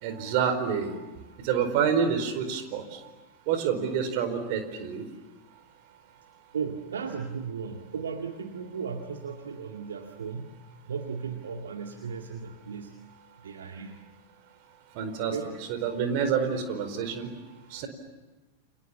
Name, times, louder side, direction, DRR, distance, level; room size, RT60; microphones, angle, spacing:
voice 1, 0.0-1.0 1.4-3.0 3.5-5.0 14.9-15.3 15.7-17.3 17.7-17.9, right 7 dB, 45° right, 8 dB, 4.6 m, -28 dB
voice 2, 6.5-10.5 10.9-12.9 13.4-14.0 15.2-15.6 16.0-16.2, right 6 dB, 65° right, 4 dB, 2.1 m, -36 dB
30.0 x 27.5 x 7.3 m, 1.1 s
figure-of-eight pair, 90°, 0 cm